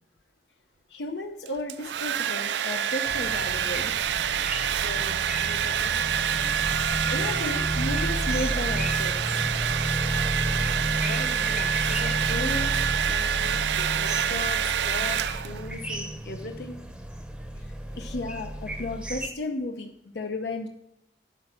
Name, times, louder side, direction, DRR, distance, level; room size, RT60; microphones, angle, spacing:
voice 1, 0.9-3.9 7.1-9.4 13.8-13.9 17.9-20.7, left 2 dB, 80° left, 4 dB, 0.8 m, -33 dB
Domestic sounds home sounds, 1.5-15.7, right 8 dB, 80° right, 0.4 m, -27 dB
sound 1, 3.1-19.3, right 1 dB, 5° right, 0.7 m, -32 dB
voice 2, 4.6-6.0 11.1-13.6 14.0-16.8, left 2 dB, 55° left, 6 dB, 1.0 m, -38 dB
11.5 x 4.4 x 6.3 m, 0.80 s
head